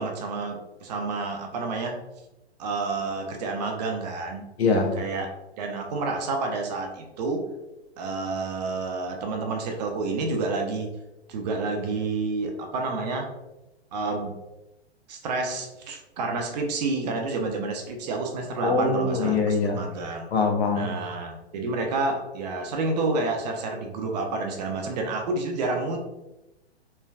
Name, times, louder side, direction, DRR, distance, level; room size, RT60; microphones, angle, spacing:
voice 1, 0.0-2.0 2.6-4.4 5.0-5.3 5.6-7.5 8.0-10.9 11.3-13.3 13.9-14.4 15.1-20.2 20.7-26.0, right 3 dB, 40° right, 3 dB, 0.5 m, -29 dB
voice 2, 4.6-4.9 18.6-19.8 20.3-20.9, left 4 dB, 70° left, 2 dB, 0.7 m, -23 dB
3.2 x 2.3 x 2.3 m, 0.97 s
hypercardioid pair, 120°, 33 cm